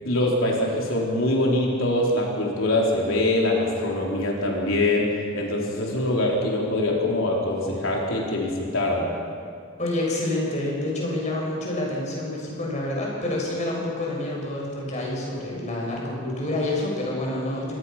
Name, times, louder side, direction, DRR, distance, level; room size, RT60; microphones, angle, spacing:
voice 1, 0.0-5.1 5.3-9.1, left 1 dB, 70° left, -2 dB, 4.3 m, -23 dB
voice 2, 9.8-17.8, left 1 dB, 35° left, -3 dB, 6.5 m, -28 dB
25.5 x 19.0 x 5.9 m, 2.3 s
head